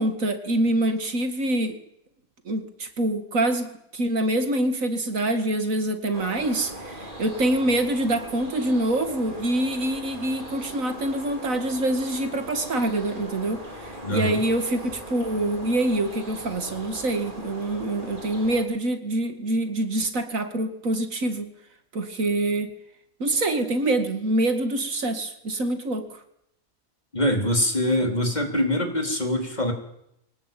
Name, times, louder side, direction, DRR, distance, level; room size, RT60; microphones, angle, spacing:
voice 1, 0.0-1.8 2.5-3.7 3.9-21.5 21.9-22.7 23.2-26.2, right 1 dB, 75° right, 8 dB, 2.5 m, -25 dB
sound 1, 6.1-18.6, right 1 dB, 35° right, 4.5 m, -40 dB
voice 2, 14.0-14.4 27.1-29.7, left 1 dB, 30° left, 2 dB, 4.0 m, -24 dB
23.5 x 18.5 x 9.2 m, 0.78 s
omnidirectional pair, 1.4 m